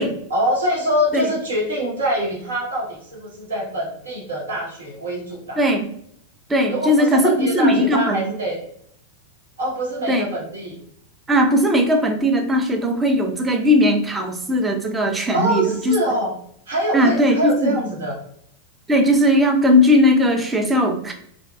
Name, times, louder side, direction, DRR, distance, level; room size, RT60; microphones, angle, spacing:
voice 1, 0.0-5.6 6.7-8.6 9.6-10.8 15.3-16.3 16.7-18.2, equal, 70° right, -3 dB, 0.9 m, -24 dB
voice 2, 5.6-5.9 6.5-8.2 10.1-10.3 11.3-16.0 16.9-17.8 18.9-21.1, left 1 dB, 15° right, 3 dB, 0.4 m, -18 dB
2.6 x 2.2 x 2.3 m, 0.67 s
figure-of-eight pair, 90°, 0 cm